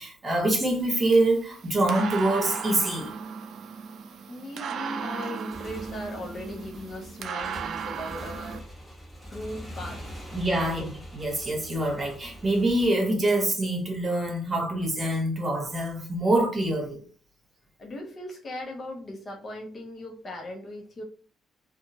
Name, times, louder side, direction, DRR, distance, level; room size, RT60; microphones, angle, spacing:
voice 1, 0.0-3.1 10.3-10.8 11.1-17.0, right 1 dB, 30° right, 1.0 m, -25 dB
sound 1, 0.6-8.6, right 7 dB, 65° right, 0.3 m, -36 dB
voice 2, 4.3-8.8 9.3-10.0 10.6-10.9 17.8-21.0, left 1 dB, 45° left, 1.0 m, -38 dB
Motorcycle / Engine, 5.3-12.9, equal, 15° left, 1.2 m, -43 dB
2.7 x 2.4 x 2.7 m
cardioid pair, 90°, 0 cm